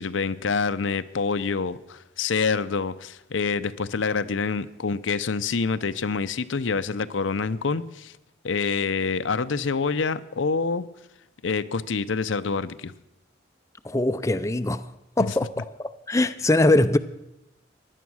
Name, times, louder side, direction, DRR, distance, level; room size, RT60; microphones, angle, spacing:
voice 1, 0.0-8.1 8.4-10.9 11.4-12.9 15.2-15.3, left 4 dB, 80° left, 0.7 m, -26 dB
voice 2, 13.8-14.9 15.2-17.0, left 2 dB, 15° left, 0.5 m, -22 dB
16.5 x 11.0 x 6.3 m
head